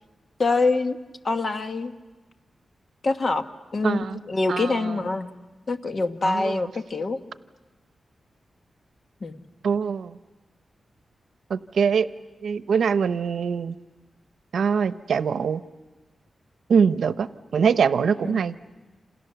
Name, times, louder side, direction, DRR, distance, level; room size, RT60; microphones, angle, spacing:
voice 1, 0.4-1.0 1.2-1.9 3.0-3.4 3.7-5.3 5.7-7.2 9.2-9.4 18.2-18.4, left 3 dB, 50° left, 8 dB, 1.4 m, -25 dB
voice 2, 3.8-4.2 4.5-4.7 6.2-6.6 9.6-10.1 11.5-12.1 12.4-13.8 14.5-15.6 16.7-18.5, right 6 dB, 85° right, 13 dB, 0.8 m, -23 dB
28.5 x 28.0 x 6.9 m, 1.2 s
wide cardioid pair, 90°, 0 cm